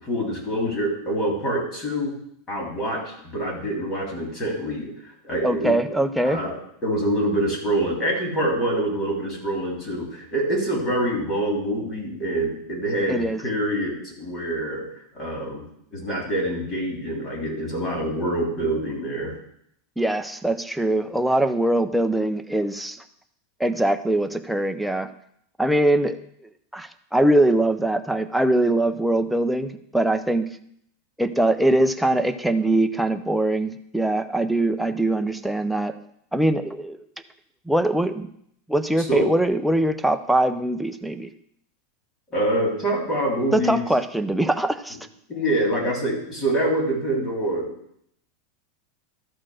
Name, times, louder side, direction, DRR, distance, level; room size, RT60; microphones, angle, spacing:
voice 1, 0.0-2.1 2.5-15.6 15.9-19.3 39.0-39.3 42.3-43.8 44.9-45.0 45.3-47.7, right 1 dB, 25° left, -2 dB, 3.2 m, -26 dB
voice 2, 5.4-6.4 13.1-13.4 20.0-23.0 23.6-25.1 25.6-26.2 26.7-30.5 31.2-35.9 36.3-37.0 37.7-38.3 38.7-41.3 43.5-45.0, right 1 dB, ahead, 7 dB, 0.5 m, -22 dB
13.0 x 4.5 x 6.3 m, 0.71 s
supercardioid pair, 160°, 0 cm